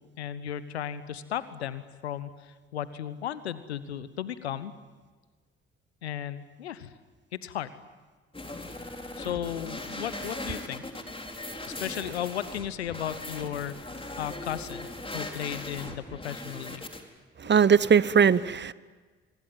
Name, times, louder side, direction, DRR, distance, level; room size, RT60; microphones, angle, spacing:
voice 1, 0.2-4.7 6.0-6.9 7.4-7.7 9.2-10.8 11.7-14.9 15.1-16.8, left 10 dB, 85° left, 16 dB, 1.0 m, -35 dB
sound 1, 8.3-17.0, left 2 dB, 15° left, 4.4 m, -39 dB
voice 2, 17.4-18.7, right 7 dB, 35° right, 19 dB, 1.0 m, -20 dB
25.0 x 24.5 x 9.3 m, 1.4 s
figure-of-eight pair, 45°, 32 cm